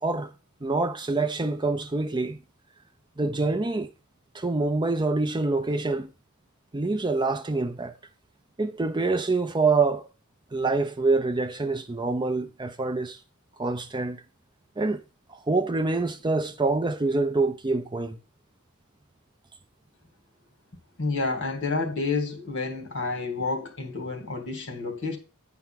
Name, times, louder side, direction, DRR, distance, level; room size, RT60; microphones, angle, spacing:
voice 1, 0.0-0.3 0.6-2.4 3.2-3.9 4.3-6.1 6.7-7.9 8.6-10.1 10.5-13.2 13.6-14.2 14.8-15.0 15.5-18.2, right 3 dB, 20° right, 0.6 m, -26 dB
voice 2, 21.0-25.2, left 3 dB, 55° left, 2.4 m, -29 dB
9.8 x 4.6 x 5.7 m
head